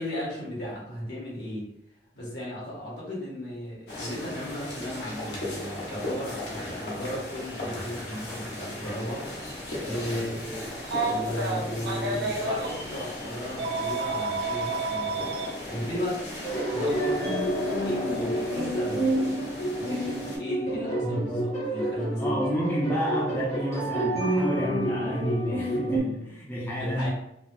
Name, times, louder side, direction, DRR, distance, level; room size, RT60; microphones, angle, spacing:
voice 1, 0.0-1.7 2.1-9.2 9.8-10.7 11.0-15.2 15.7-16.2 16.7-19.1 19.8-22.4 26.8-27.1, equal, 65° left, -6 dB, 1.5 m, -35 dB
sound 1, 3.9-20.4, left 1 dB, 90° left, 1.1 m, -36 dB
voice 2, 9.8-10.2 21.0-21.5 22.2-27.1, equal, 10° left, -6 dB, 0.5 m, -30 dB
Telephone, 10.8-12.7 13.6-15.5 16.8-17.0 18.5-18.7, right 3 dB, 70° right, 0.6 m, -30 dB
sound 2, 16.4-26.0, right 1 dB, 40° left, 1.0 m, -29 dB
3.9 x 2.0 x 2.6 m, 0.81 s
head